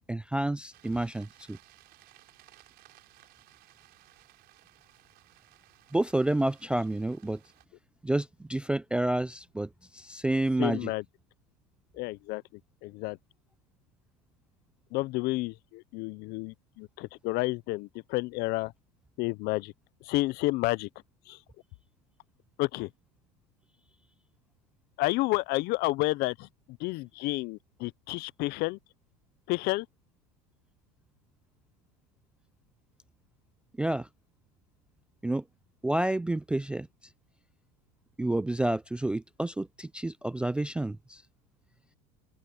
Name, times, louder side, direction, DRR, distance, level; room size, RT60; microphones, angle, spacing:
voice 1, 0.0-1.6 5.9-7.4 8.0-10.9 33.8-34.1 35.2-35.4 35.8-36.9 38.2-41.2, right 1 dB, 5° right, 0.3 m, -29 dB
sound 1, 0.7-7.6, right 17 dB, 50° right, 5.1 m, -59 dB
voice 2, 10.6-11.0 11.9-12.4 12.8-13.2 14.9-18.7 19.2-19.7 20.0-20.9 21.3-21.4 22.6-22.9 25.0-26.5 26.8-28.8 29.5-29.9, left 21 dB, 50° left, 0.6 m, -30 dB
open air
cardioid pair, 145°, 21 cm